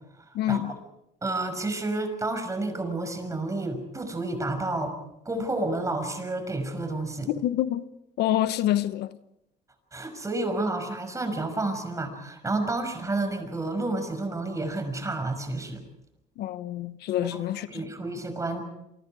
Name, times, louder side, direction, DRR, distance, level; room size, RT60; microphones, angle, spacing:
voice 1, 0.3-0.8 7.3-7.8 8.2-9.2 16.4-17.8, left 12 dB, 75° left, 1.0 m, -27 dB
voice 2, 1.2-4.9 5.2-7.3 9.9-15.8 17.2-17.4 17.7-18.6, right 2 dB, 20° right, 6.0 m, -30 dB
28.5 x 24.5 x 4.8 m
cardioid pair, 110°, 17 cm